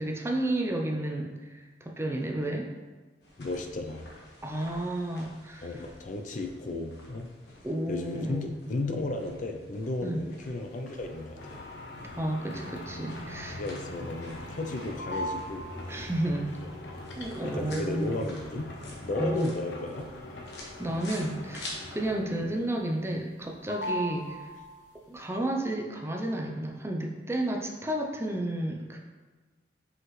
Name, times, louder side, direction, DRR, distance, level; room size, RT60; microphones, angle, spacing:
voice 1, 0.0-2.7 4.4-5.7 7.6-8.5 10.0-10.2 12.2-13.6 15.9-16.5 17.1-18.2 19.2-19.5 20.8-24.5 25.1-29.0, right 1 dB, 15° right, 1 dB, 0.5 m, -32 dB
sound 1, 3.2-21.7, left 2 dB, 60° left, 1.3 m, -50 dB
voice 2, 3.4-4.1 5.6-7.3 7.9-11.6 13.5-16.0 16.6-16.7 17.4-18.7 19.0-20.0, left 2 dB, 45° left, 4 dB, 0.4 m, -34 dB
sound 2, 11.0-22.5 22.9-23.4 23.7-25.0, left 1 dB, 75° left, 0.9 m, -40 dB
5.7 x 5.3 x 3.1 m, 1.3 s
head